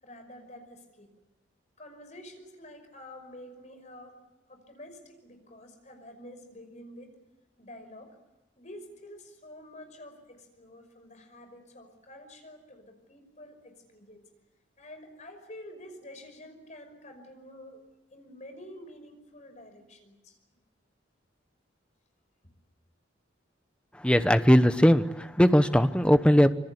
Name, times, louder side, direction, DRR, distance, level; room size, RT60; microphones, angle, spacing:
voice 1, 0.0-1.1 1.8-4.2 4.5-7.2 7.6-8.2 8.6-14.2 14.8-17.8 18.1-20.4, left 1 dB, 40° left, 6 dB, 5.6 m, -48 dB
voice 2, 24.0-26.5, equal, 5° left, 10 dB, 1.0 m, -20 dB
26.0 x 24.0 x 8.2 m, 1.0 s
head